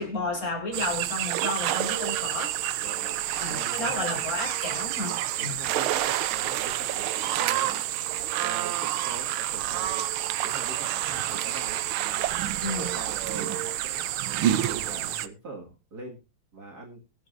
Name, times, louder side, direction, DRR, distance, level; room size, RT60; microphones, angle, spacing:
voice 1, 0.0-2.5 3.3-5.1 5.4-5.6 12.6-12.9, left 2 dB, 40° left, 1 dB, 4.6 m, -32 dB
sound 1, 0.7-15.3, right 13 dB, 80° right, 1.5 m, -28 dB
voice 2, 2.8-3.2 3.5-4.3 5.0-7.8 8.4-10.0 10.4-16.2 16.5-17.0, right 2 dB, 50° right, 0 dB, 2.5 m, -43 dB
23.0 x 7.8 x 2.6 m, 0.28 s
omnidirectional pair, 2.3 m